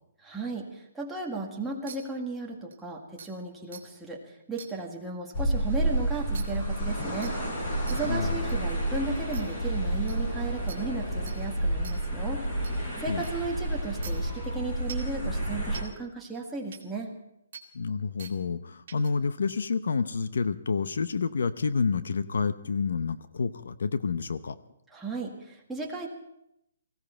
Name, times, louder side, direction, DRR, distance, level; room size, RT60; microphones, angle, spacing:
voice 1, 0.2-17.1 24.9-26.1, right 3 dB, 5° right, -3 dB, 1.7 m, -35 dB
sound 1, 1.9-2.0 2.7-2.8 3.2-3.3 3.7-3.8 4.6-4.7 6.3-6.4 7.2-7.3 7.9-8.0 8.5-8.6 9.3-9.4 10.1-10.2 10.7-10.8 11.3-11.4 11.8-12.0 12.6-12.7 13.2-13.3 14.0-14.1 14.9-15.1 15.7-15.8 16.7-16.8 17.5-17.6 18.2-18.3 18.9-19.1, right 7 dB, 50° right, 2.3 m, -43 dB
sound 2, 5.3-15.8, right 1 dB, 25° left, 6.5 m, -30 dB
voice 2, 8.1-8.5 13.1-13.2 17.7-24.6, left 5 dB, 75° left, 13 dB, 0.8 m, -29 dB
18.5 x 16.5 x 4.5 m, 0.82 s
hypercardioid pair, 165°, 0 cm